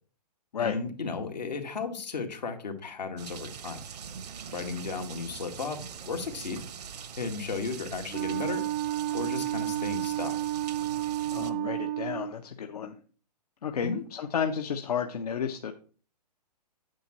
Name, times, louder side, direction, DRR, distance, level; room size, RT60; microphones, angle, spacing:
voice 1, 0.6-3.8 4.5-5.8 6.1-6.6 7.2-8.6 9.1-10.4 13.8-14.0, left 4 dB, 80° left, 3 dB, 1.8 m, -34 dB
sound 1, 3.2-11.5, right 7 dB, 70° right, 1.0 m, -43 dB
Wind instrument woodwind instrument, 8.1-12.3, right 14 dB, 20° right, 0.4 m, -31 dB
voice 2, 11.3-13.0 13.6-15.7, left 7 dB, 65° left, 6 dB, 0.8 m, -32 dB
8.9 x 7.4 x 3.0 m, 0.41 s
hypercardioid pair, 130°, 21 cm